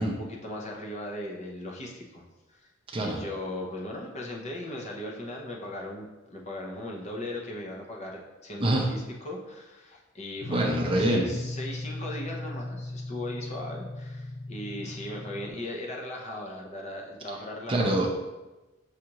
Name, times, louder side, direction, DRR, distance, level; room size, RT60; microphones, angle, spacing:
voice 1, 0.0-2.2 2.5-2.7 3.0-17.9, left 1 dB, 35° left, -1 dB, 0.6 m, -38 dB
sound 1, 10.4-15.5, left 2 dB, 75° left, 0.5 m, -37 dB
voice 2, 10.5-11.3 17.7-18.1, right 1 dB, 25° right, 0 dB, 0.5 m, -25 dB
6.3 x 2.4 x 2.9 m, 1.1 s
head